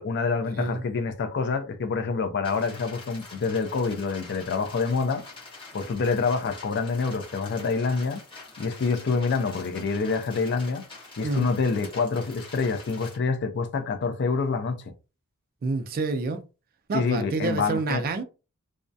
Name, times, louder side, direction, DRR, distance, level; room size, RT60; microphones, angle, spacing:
voice 1, 0.0-5.2 5.7-8.2 8.6-10.9 11.2-14.8 16.9-18.0, left 4 dB, 50° left, 0.4 m, -26 dB
sound 1, 2.4-13.2, left 3 dB, 25° left, 0.8 m, -45 dB
voice 2, 15.6-16.4 16.9-18.2, right 3 dB, 40° right, 0.4 m, -28 dB
2.3 x 2.1 x 2.6 m
head